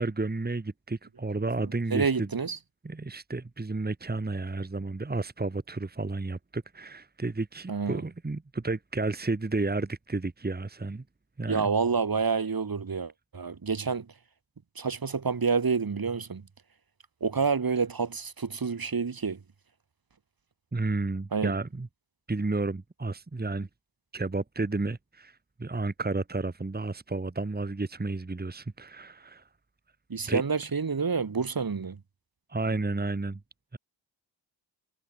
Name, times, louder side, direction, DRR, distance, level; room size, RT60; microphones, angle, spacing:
voice 1, 0.0-2.3 2.8-11.0 11.4-11.7 20.7-21.9 22.3-23.7 24.1-29.4 30.3-30.4 32.5-33.4 33.7-33.8, right 3 dB, 20° right, 1.7 m, -32 dB
voice 2, 1.6-2.6 7.7-8.0 11.5-14.1 14.8-16.4 17.2-19.4 21.3-21.5 30.1-32.0, right 5 dB, 55° right, 3.1 m, -28 dB
wide cardioid pair, 90°, 43 cm